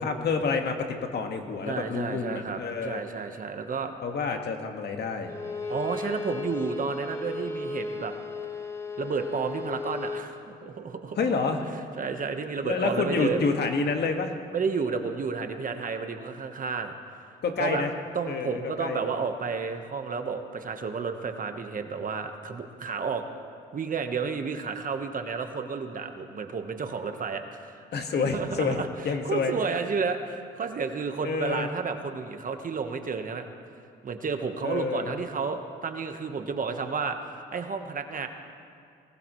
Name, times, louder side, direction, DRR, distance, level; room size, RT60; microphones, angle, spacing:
voice 1, 0.0-3.0 4.0-5.3 11.2-11.6 12.6-14.3 17.4-17.9 18.3-19.0 27.9-29.5 31.2-31.7 34.6-35.2, left 4 dB, 55° left, 4 dB, 1.8 m, -28 dB
voice 2, 1.6-3.9 5.7-8.1 9.0-11.2 12.0-13.4 14.5-16.9 17.6-17.8 18.1-23.2 23.7-27.8 28.2-28.9 29.2-33.5 34.0-38.3, right 5 dB, 45° right, 6 dB, 1.3 m, -31 dB
Bowed string instrument, 5.3-10.3, left 3 dB, 15° left, 1.5 m, -35 dB
23.0 x 19.0 x 3.2 m, 2.3 s
cardioid pair, 90°, 20 cm